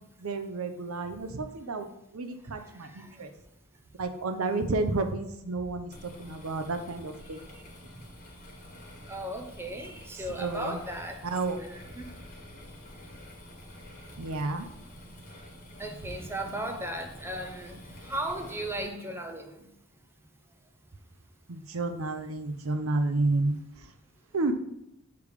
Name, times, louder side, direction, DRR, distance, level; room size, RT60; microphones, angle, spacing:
voice 1, 0.0-3.3 4.0-7.5 10.1-10.8 11.2-11.6 14.2-14.7 21.5-23.9 24.3-24.5, right 3 dB, 75° right, 0.7 m, -31 dB
voice 2, 2.9-3.2 7.5-7.6 9.1-11.2 11.6-12.1 15.8-19.7, right 1 dB, 10° right, 0.6 m, -36 dB
sound 1, 5.9-18.9, left 1 dB, 35° left, 1.4 m, -48 dB
6.9 x 3.4 x 4.8 m
head